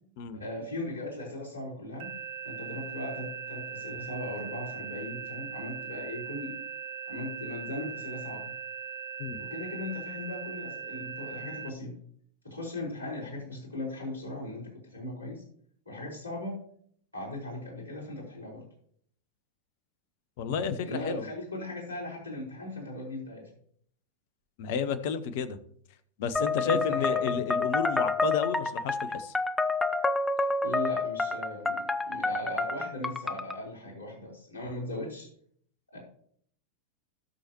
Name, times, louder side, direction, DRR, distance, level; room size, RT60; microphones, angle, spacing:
voice 1, 0.3-2.1 2.4-6.6 7.1-8.5 9.4-11.9 12.4-15.4 15.8-16.6 17.1-18.6 20.8-23.5 26.6-27.2 30.6-35.3 35.9-36.0, left 1 dB, 90° right, -4 dB, 4.5 m, -38 dB
sound 1, 2.0-11.7, right 7 dB, 55° right, 0.7 m, -40 dB
voice 2, 20.4-21.2 24.6-25.6 26.2-29.3, left 6 dB, 50° left, 13 dB, 1.0 m, -31 dB
sound 2, 26.4-33.6, left 3 dB, 10° left, 0.7 m, -29 dB
17.0 x 6.6 x 3.1 m, 0.62 s
figure-of-eight pair, 90°, 0 cm